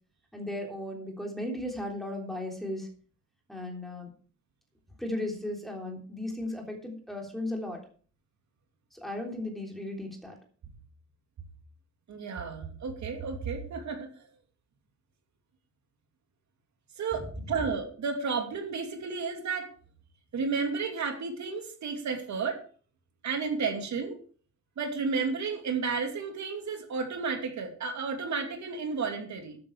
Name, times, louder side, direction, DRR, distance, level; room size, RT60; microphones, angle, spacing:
voice 1, 0.3-2.9 3.5-4.1 5.0-7.8 8.9-10.3, left 1 dB, ahead, 0 dB, 3.4 m, -36 dB
voice 2, 12.1-14.1 17.0-19.7 20.3-22.6 23.2-24.2 24.8-29.6, right 5 dB, 70° right, 4 dB, 2.7 m, -32 dB
12.5 x 9.8 x 4.7 m, 0.41 s
wide cardioid pair, 145°, 29 cm